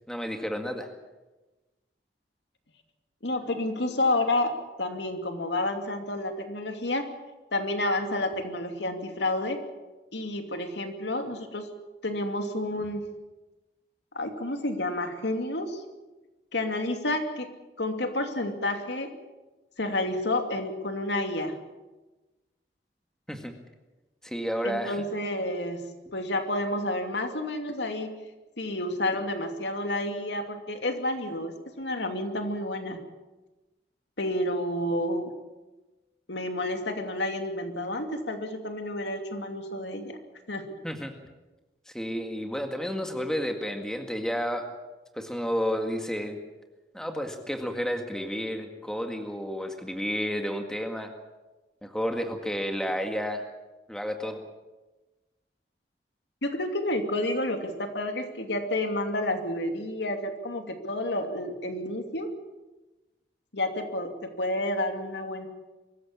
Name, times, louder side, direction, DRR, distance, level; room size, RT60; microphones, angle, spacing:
voice 1, 0.1-0.9 23.3-23.5 24.2-25.0 40.8-41.1 41.9-44.7 45.1-46.4 46.9-51.1 51.8-53.5 53.9-54.4, equal, 5° left, 4 dB, 1.9 m, -31 dB
voice 2, 3.2-4.5 4.8-7.1 7.5-9.6 10.1-11.7 12.0-13.1 14.1-15.8 16.5-17.5 17.8-19.1 19.8-21.5 24.6-25.9 26.1-28.1 28.6-33.0 34.2-35.3 36.3-40.2 40.5-40.6 56.4-62.3 63.5-65.5, left 1 dB, 80° left, 5 dB, 2.7 m, -30 dB
23.5 x 15.0 x 8.6 m, 1.1 s
head